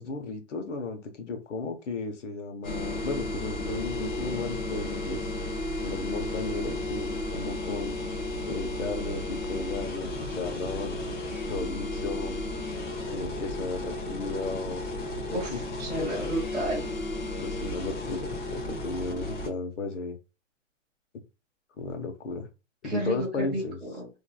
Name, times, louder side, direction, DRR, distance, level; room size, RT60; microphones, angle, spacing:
voice 1, 0.0-5.3 5.8-8.0 8.5-11.0 11.5-12.4 13.1-14.8 15.3-15.6 17.4-20.2 21.8-22.5 22.8-23.8, left 3 dB, 70° left, 6 dB, 1.0 m, -35 dB
sound 1, 2.6-19.5, left 1 dB, 40° left, 1.0 m, -33 dB
voice 2, 15.3-16.9 22.8-24.1, right 1 dB, ahead, -13 dB, 0.5 m, -32 dB
3.0 x 2.6 x 2.3 m, 0.29 s
hypercardioid pair, 155°, 38 cm